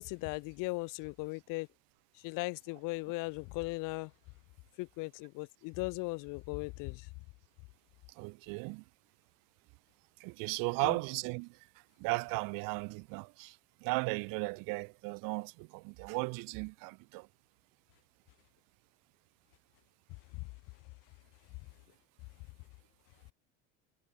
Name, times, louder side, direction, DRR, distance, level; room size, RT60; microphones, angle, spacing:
voice 1, 0.0-1.7 2.1-4.1 4.8-7.1 10.8-11.0 20.3-20.5, left 26 dB, 70° left, 0.7 m, -38 dB
voice 2, 8.2-8.8 10.2-11.6 12.0-17.3, right 30 dB, 70° right, 0.6 m, -36 dB
supercardioid pair, 90°, 34 cm